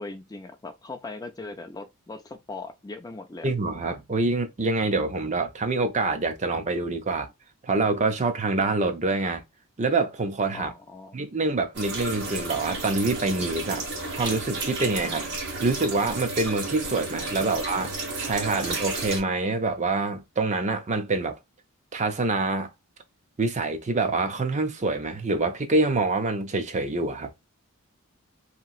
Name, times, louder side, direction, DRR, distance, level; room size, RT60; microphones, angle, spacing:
voice 1, 0.0-3.5 10.5-11.2, left 3 dB, 15° left, 0.4 m, -39 dB
voice 2, 3.4-7.3 7.6-9.4 9.8-10.7 11.1-15.3 15.6-21.4 21.9-22.7 23.4-27.3, right 3 dB, 30° right, 0.6 m, -26 dB
sound 1, 11.7-19.2, right 2 dB, 55° right, 1.4 m, -32 dB
3.0 x 2.8 x 2.4 m
head